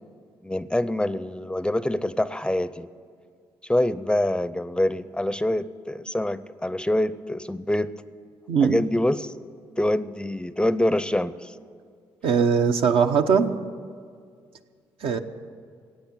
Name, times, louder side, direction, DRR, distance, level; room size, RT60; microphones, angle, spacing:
voice 1, 0.4-2.9 3.6-7.9 8.6-9.3 9.8-11.5, left 1 dB, 10° left, 15 dB, 0.5 m, -25 dB
voice 2, 8.5-8.8 12.2-13.5 15.0-15.2, right 6 dB, 70° right, 6 dB, 0.9 m, -20 dB
16.0 x 8.6 x 9.1 m, 2.1 s
supercardioid pair, 65°, 10 cm